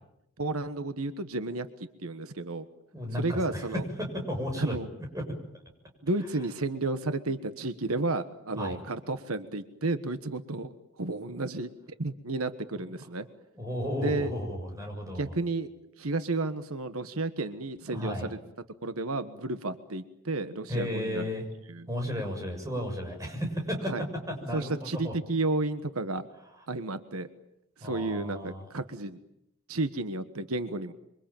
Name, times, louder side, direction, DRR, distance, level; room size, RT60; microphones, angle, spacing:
voice 1, 0.4-2.7 3.2-3.8 4.6-4.9 6.0-11.7 12.0-13.3 14.0-14.3 15.2-15.7 16.0-18.4 18.8-21.2 21.7-21.9 23.9-24.0 24.5-26.3 26.7-27.3 27.8-29.2 29.7-30.9, right 2 dB, 80° right, 11 dB, 1.4 m, -32 dB
voice 2, 2.9-3.7 4.3-4.8 8.6-8.8 13.5-15.3 17.9-18.3 20.7-21.5 21.9-23.9 24.3-25.1 27.8-28.7, left 1 dB, 15° right, 2 dB, 7.0 m, -34 dB
27.0 x 24.5 x 9.0 m, 0.82 s
head